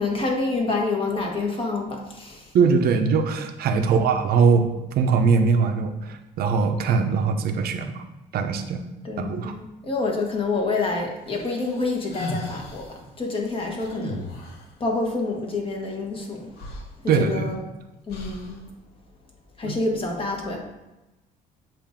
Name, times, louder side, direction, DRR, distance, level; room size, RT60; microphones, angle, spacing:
voice 1, 0.0-2.5 3.7-4.1 9.0-14.3 14.8-16.6 17.2-17.6 18.1-18.6 19.6-20.6, left 3 dB, 30° left, 0 dB, 1.3 m, -27 dB
voice 2, 2.5-8.0 8.3-8.8 9.2-9.5 17.1-17.5 19.6-19.8, right 5 dB, 65° right, 6 dB, 0.7 m, -21 dB
sound 1, 11.3-12.9 13.8-14.7 16.2-16.3 16.6-17.6 18.1-18.6, left 1 dB, 70° left, 1.2 m, -36 dB
7.3 x 2.7 x 5.0 m, 1.0 s
cardioid pair, 110°, 17 cm